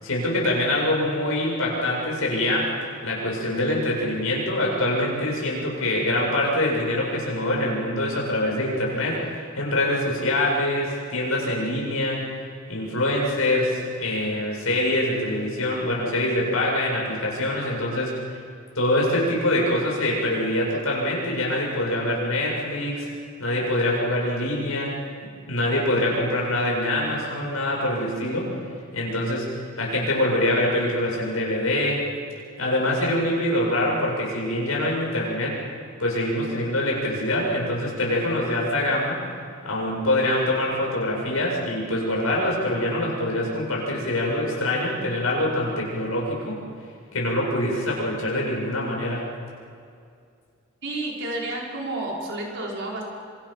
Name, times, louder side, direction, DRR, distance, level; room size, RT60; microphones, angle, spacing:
voice 1, 0.0-2.7 3.0-12.3 12.7-18.2 18.8-23.1 23.4-25.0 25.5-28.5 28.9-32.1 32.6-35.6 36.0-39.2 39.6-46.6 47.1-49.2, left 1 dB, 85° left, -3 dB, 7.7 m, -24 dB
voice 2, 50.8-53.0, right 2 dB, 60° right, -2 dB, 5.7 m, -30 dB
26.5 x 25.5 x 6.0 m, 2.3 s
head